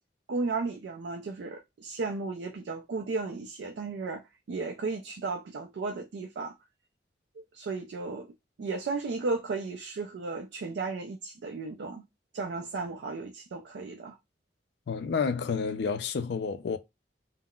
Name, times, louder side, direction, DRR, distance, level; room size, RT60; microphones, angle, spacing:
voice 1, 0.3-6.5 7.4-12.1 12.3-14.2, right 3 dB, 70° right, 0.4 m, -34 dB
voice 2, 14.9-16.8, left 5 dB, 65° left, 0.3 m, -30 dB
3.7 x 2.0 x 2.3 m
head